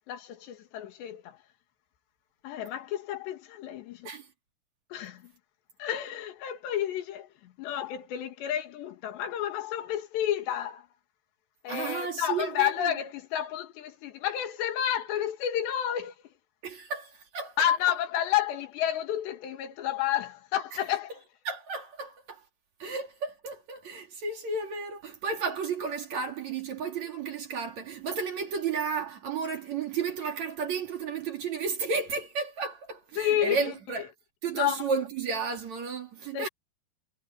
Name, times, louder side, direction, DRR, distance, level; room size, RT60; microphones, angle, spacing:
voice 1, 0.1-1.4 2.4-4.1 4.9-5.3 5.8-10.9 11.6-16.1 17.6-21.1 33.2-34.0 34.5-34.8 36.3-36.5, left 11 dB, 75° left, 4.2 m, -30 dB
voice 2, 11.7-12.9 16.6-17.6 21.5-22.4 22.8-34.1 34.4-36.5, right 5 dB, 45° right, 3.3 m, -33 dB
omnidirectional pair, 5.0 m